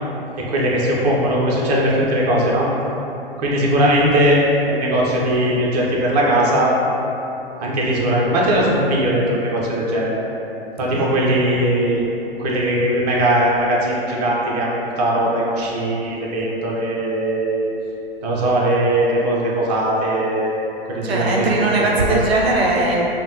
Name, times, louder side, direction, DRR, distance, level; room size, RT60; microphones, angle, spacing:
voice 1, 0.4-2.7 3.4-6.7 7.6-10.2 10.8-12.0 12.4-17.7 18.2-20.5 20.9-22.2, right 1 dB, 40° right, -4 dB, 0.6 m, -19 dB
voice 2, 21.0-23.0, right 2 dB, 85° right, -2 dB, 0.5 m, -19 dB
3.3 x 2.1 x 2.7 m, 2.9 s
hypercardioid pair, 120°, 30 cm